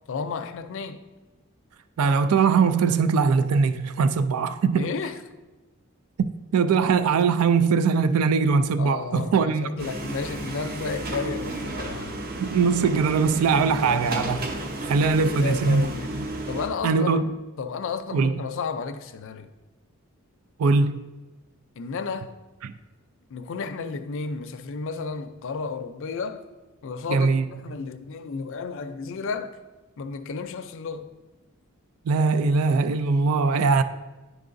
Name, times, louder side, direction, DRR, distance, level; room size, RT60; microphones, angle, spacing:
voice 1, 0.1-1.0 4.7-5.2 8.8-12.2 13.6-14.0 14.5-14.8 15.2-16.2 16.5-17.2 17.6-19.5 21.8-22.3 23.3-26.5 26.8-29.6 30.0-31.1, left 5 dB, 65° left, 0.4 m, -32 dB
voice 2, 2.0-4.9 6.5-9.8 12.4-14.5 14.8-15.9 16.1-16.2 16.8-17.2 18.1-18.4 20.6-21.0 22.6-22.7 27.1-27.5 32.1-33.8, right 5 dB, 85° right, 0.4 m, -21 dB
sound 1, 9.8-16.7, right 2 dB, 45° right, 0.7 m, -33 dB
10.0 x 4.6 x 2.6 m
head